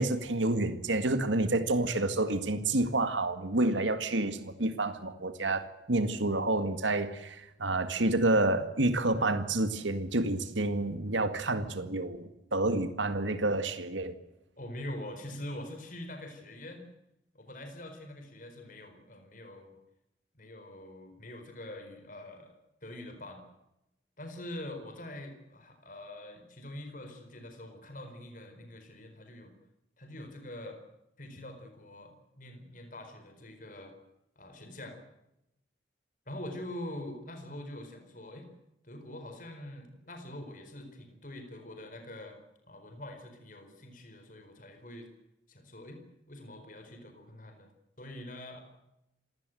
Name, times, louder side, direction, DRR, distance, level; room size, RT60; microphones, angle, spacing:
voice 1, 0.0-14.2, right 2 dB, 85° right, 10 dB, 2.0 m, -29 dB
voice 2, 14.6-16.9 17.3-19.8 20.3-22.5 22.8-23.4 24.2-29.5 30.0-30.8 31.2-33.9 34.4-35.0 36.3-38.5 38.8-42.4 42.7-45.1 45.5-46.0 46.3-47.7 48.0-48.6, left 1 dB, 45° left, 6 dB, 4.5 m, -44 dB
27.5 x 18.0 x 7.8 m, 0.89 s
head